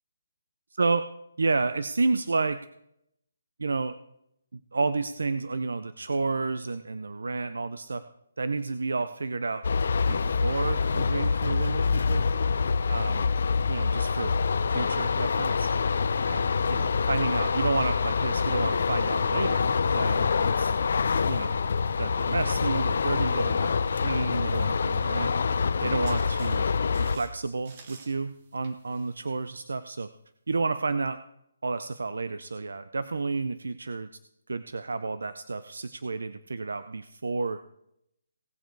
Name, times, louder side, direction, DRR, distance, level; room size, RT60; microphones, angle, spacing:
voice 1, 1.4-2.6 3.6-3.9 4.5-8.0 8.4-9.6 10.1-12.2 12.9-13.3 13.7-14.3 14.7-15.7 16.2-20.7 21.3-21.6 22.0-25.3 25.8-26.7 27.0-30.1 30.5-31.2 31.6-34.1 34.5-37.6, right 3 dB, 85° right, 12 dB, 0.5 m, -30 dB
sound 1, 9.6-27.2, left 5 dB, 55° left, 0.6 m, -26 dB
sound 2, 25.6-30.0, right 4 dB, 30° right, 1.5 m, -53 dB
18.0 x 6.8 x 4.6 m, 0.80 s
hypercardioid pair, 170°, 0 cm